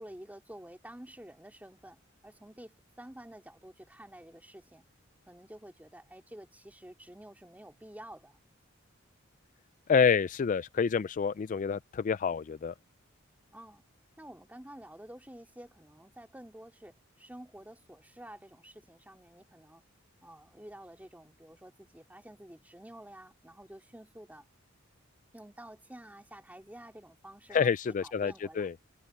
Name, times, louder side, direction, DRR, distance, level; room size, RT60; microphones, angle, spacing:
voice 1, 0.0-4.9 5.3-8.4 13.5-13.8 14.2-19.8 20.2-24.5 25.3-27.7 28.0-28.7, right 1 dB, 10° right, 2.6 m, -50 dB
voice 2, 9.9-12.7 27.5-28.7, left 6 dB, 40° left, 0.3 m, -28 dB
head